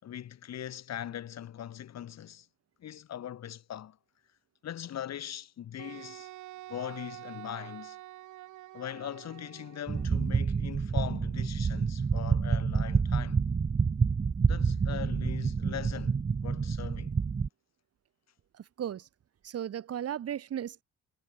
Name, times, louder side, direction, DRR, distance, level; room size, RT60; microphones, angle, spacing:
voice 1, 0.0-2.5 2.8-4.0 4.6-6.3 6.7-8.0 8.7-13.4 14.4-17.1, left 10 dB, 60° left, 4.7 m, -40 dB
Wind instrument woodwind instrument, 5.8-10.1, right 16 dB, 80° right, 5.1 m, -47 dB
sound 1, 9.9-17.5, right 5 dB, 25° right, 1.0 m, -28 dB
voice 2, 18.5-19.1 19.4-20.8, right 10 dB, 55° right, 1.9 m, -36 dB
supercardioid pair, 75°, 30 cm